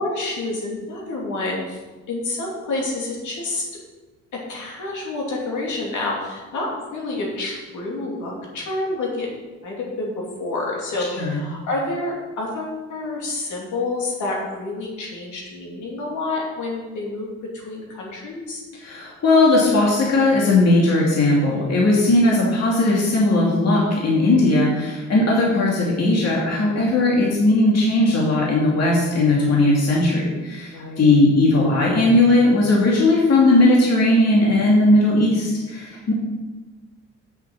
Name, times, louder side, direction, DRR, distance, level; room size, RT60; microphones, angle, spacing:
voice 1, 0.0-1.8 2.1-3.6 4.3-9.3 9.6-18.6 29.4-29.5 30.7-31.0, left 2 dB, 75° left, -3 dB, 2.9 m, -28 dB
voice 2, 11.0-11.4 18.7-36.1, left 2 dB, 55° left, -4 dB, 2.6 m, -18 dB
7.5 x 6.4 x 7.4 m, 1.2 s
cardioid pair, 90°, 30 cm